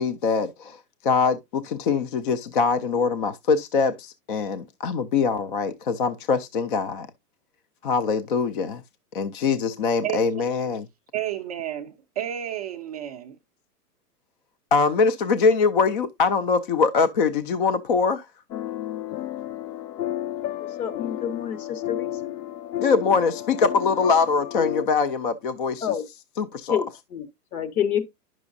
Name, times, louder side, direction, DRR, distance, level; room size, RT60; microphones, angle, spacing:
voice 1, 0.0-7.1 7.8-8.8 9.1-10.9 14.7-18.3 22.8-25.9 26.4-26.8, left 5 dB, 35° left, 0.4 m, -23 dB
voice 2, 10.0-10.4 11.1-13.4, right 11 dB, 25° right, 0.4 m, -31 dB
sound 1, 18.5-24.9, left 13 dB, 90° left, 0.6 m, -32 dB
voice 3, 20.6-22.3 25.8-26.0 26.7-28.0, left 9 dB, 65° left, 1.6 m, -28 dB
9.6 x 6.1 x 2.5 m
hypercardioid pair, 130°, 47 cm